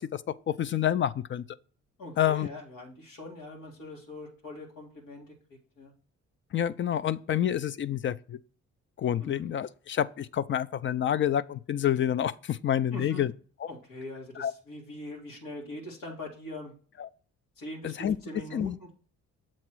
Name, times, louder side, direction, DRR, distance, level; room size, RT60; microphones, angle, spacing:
voice 1, 0.1-1.4 2.2-2.5 6.5-8.4 9.0-13.3 13.6-13.7 14.4-14.5 17.0-17.1 17.8-18.2 18.5-18.7, left 10 dB, 40° left, 0.4 m, -28 dB
voice 2, 2.0-5.9 9.2-9.4 12.9-13.2 13.7-16.7 17.6-18.9, left 1 dB, 90° left, 2.0 m, -42 dB
7.3 x 2.9 x 6.1 m
cardioid pair, 90°, 30 cm